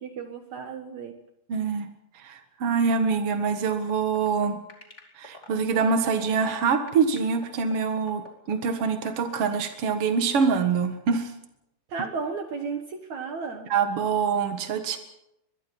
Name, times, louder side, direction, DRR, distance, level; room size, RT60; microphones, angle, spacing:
voice 1, 0.0-1.2 11.9-13.7, right 5 dB, 65° right, 6 dB, 1.8 m, -34 dB
voice 2, 1.5-1.9 2.2-4.6 5.1-11.3 13.7-15.0, right 5 dB, 90° right, 7 dB, 1.2 m, -25 dB
sound 1, 3.6-9.2, left 2 dB, 20° left, 2.4 m, -45 dB
24.0 x 21.5 x 5.5 m, 0.83 s
omnidirectional pair, 5.3 m